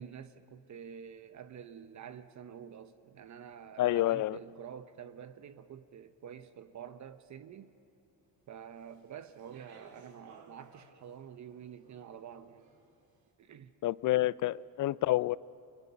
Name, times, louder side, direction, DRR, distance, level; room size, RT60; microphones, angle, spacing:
voice 1, 0.0-7.7 8.5-12.7 13.4-13.8, right 8 dB, 45° right, 1.0 m, -48 dB
voice 2, 3.8-4.4 13.8-15.4, left 15 dB, 50° left, 0.5 m, -28 dB
Speech, 8.7-13.1, right 5 dB, 65° right, 3.5 m, -60 dB
30.0 x 24.0 x 5.8 m
cardioid pair, 115°, 39 cm